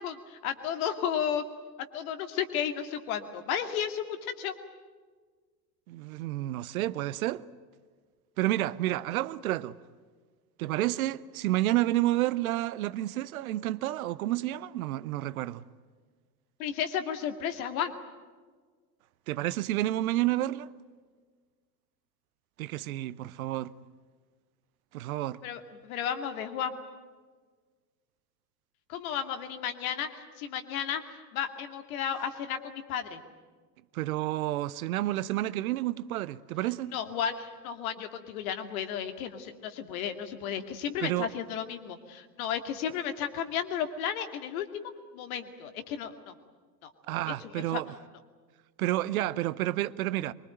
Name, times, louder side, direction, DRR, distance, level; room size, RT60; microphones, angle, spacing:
voice 1, 0.0-1.4 1.9-4.5 16.6-17.9 25.4-26.8 28.9-33.2 36.9-46.3 46.8-46.9 47.6-47.8, left 8 dB, 55° left, 2.5 m, -33 dB
voice 2, 5.9-7.4 8.4-9.8 10.6-15.6 19.3-20.7 22.6-23.7 24.9-25.4 33.9-36.9 41.0-41.3 47.1-47.9 48.8-50.3, right 15 dB, 60° right, 0.9 m, -30 dB
24.0 x 23.5 x 9.1 m
figure-of-eight pair, 75°, 49 cm